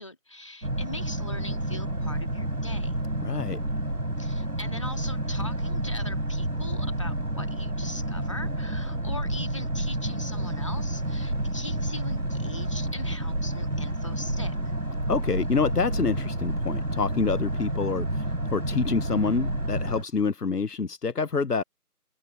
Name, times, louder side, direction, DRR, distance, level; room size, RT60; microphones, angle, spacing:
voice 1, 0.0-3.0 4.2-14.6, left 1 dB, 20° left, 2.6 m, -41 dB
Boat Water vehicle, 0.6-20.0, right 1 dB, 75° right, 7.2 m, -29 dB
voice 2, 3.2-3.6 15.1-21.6, left 5 dB, 90° left, 0.9 m, -27 dB
figure-of-eight pair, 170°, 46 cm